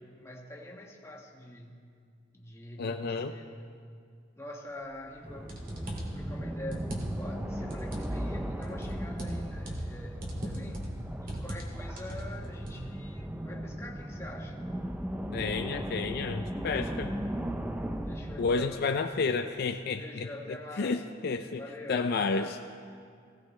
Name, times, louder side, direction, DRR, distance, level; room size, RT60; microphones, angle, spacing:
voice 1, 0.0-1.9 2.3-3.9 4.4-10.9 11.2-14.6 18.0-18.9 20.0-21.0 21.5-22.6, left 1 dB, 15° left, -1 dB, 1.4 m, -45 dB
voice 2, 2.8-3.3 15.3-17.1 18.4-20.3 20.8-21.6 21.9-22.5, left 4 dB, 55° left, 7 dB, 0.4 m, -30 dB
sound 1, 5.0-5.1 5.5-6.2 6.7-7.4 7.7-8.2 8.6-9.9 10.2-11.0 11.3-11.7 12.0-12.8, right 1 dB, 50° right, 2.5 m, -37 dB
sound 2, 5.2-18.7, right 1 dB, 10° right, 0.5 m, -37 dB
18.5 x 16.5 x 3.2 m, 2.2 s
head